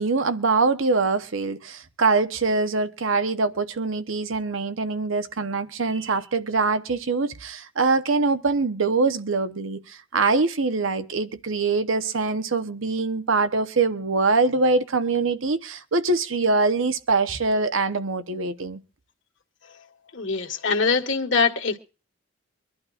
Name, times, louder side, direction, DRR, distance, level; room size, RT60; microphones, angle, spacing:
voice 1, 0.0-18.8, right 3 dB, 70° right, 1.0 m, -23 dB
voice 2, 20.1-21.8, left 5 dB, 65° left, 1.7 m, -23 dB
24.5 x 11.5 x 2.5 m
head